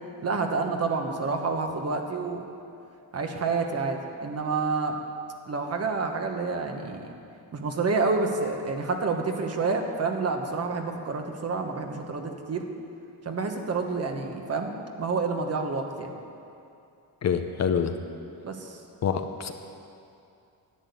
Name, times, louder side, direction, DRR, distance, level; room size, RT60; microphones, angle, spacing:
voice 1, 0.2-2.4 3.1-5.0 5.5-7.1 7.5-12.6 13.2-16.1 18.4-18.8, right 4 dB, 40° right, 4 dB, 1.3 m, -28 dB
voice 2, 17.2-17.9 19.0-19.5, left 7 dB, 40° left, 7 dB, 0.7 m, -26 dB
11.0 x 9.9 x 8.4 m, 2.6 s
cardioid pair, 135°, 40 cm